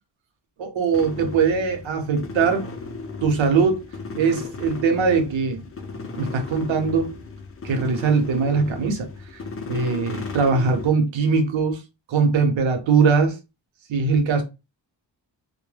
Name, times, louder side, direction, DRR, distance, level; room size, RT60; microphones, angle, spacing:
voice 1, 0.6-2.7 3.2-3.9 4.2-5.6 6.2-7.2 7.6-9.1 9.7-11.8 12.1-13.4 13.9-14.4, right 5 dB, 80° right, 0.8 m, -21 dB
sound 1, 0.9-10.9, left 4 dB, 30° left, 0.4 m, -35 dB
2.1 x 2.1 x 3.1 m
wide cardioid pair, 135°, 46 cm